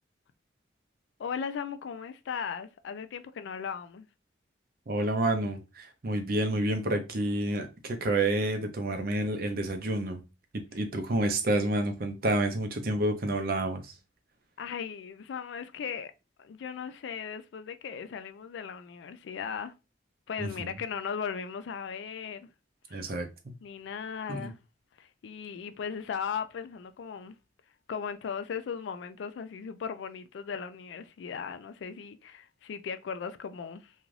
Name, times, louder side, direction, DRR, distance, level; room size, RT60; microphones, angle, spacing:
voice 1, 1.2-4.1 14.6-16.1 16.4-19.7 20.3-22.5 22.9-23.0 23.6-24.6 25.0-27.4 27.9-33.9, left 6 dB, 70° left, 0.3 m, -37 dB
voice 2, 4.9-10.2 10.7-13.9 20.4-20.7 22.9-23.5 24.3-24.5, right 1 dB, 50° right, 0.5 m, -29 dB
2.5 x 2.4 x 3.1 m
head